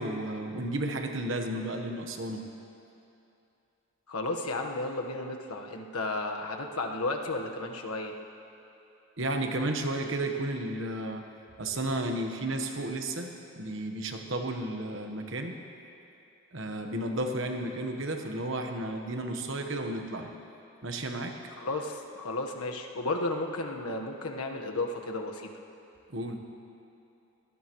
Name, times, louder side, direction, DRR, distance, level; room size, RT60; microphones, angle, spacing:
voice 1, 0.0-2.4 9.2-11.2 11.6-15.6 16.5-20.3 20.8-21.4 26.1-26.4, right 1 dB, 60° right, 4 dB, 1.2 m, -33 dB
voice 2, 4.1-8.1 21.6-25.5, left 2 dB, 90° left, 2 dB, 1.4 m, -33 dB
23.0 x 19.0 x 3.1 m, 2.7 s
head